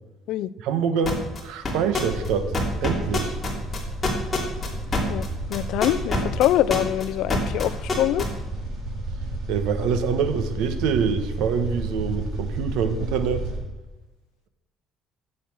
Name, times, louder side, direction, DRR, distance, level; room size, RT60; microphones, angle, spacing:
voice 1, 0.6-2.5 2.8-3.4 9.5-13.5, right 6 dB, 85° right, 9 dB, 1.3 m, -25 dB
sound 1, 1.0-1.4 1.6-2.3 2.5-8.2, left 4 dB, 20° left, 3.1 m, -25 dB
sound 2, 2.0-13.6, right 1 dB, 55° right, 4.6 m, -32 dB
voice 2, 5.5-8.3, left 13 dB, 70° left, 18 dB, 0.5 m, -24 dB
14.0 x 8.3 x 6.4 m, 1.1 s
cardioid pair, 135°, 0 cm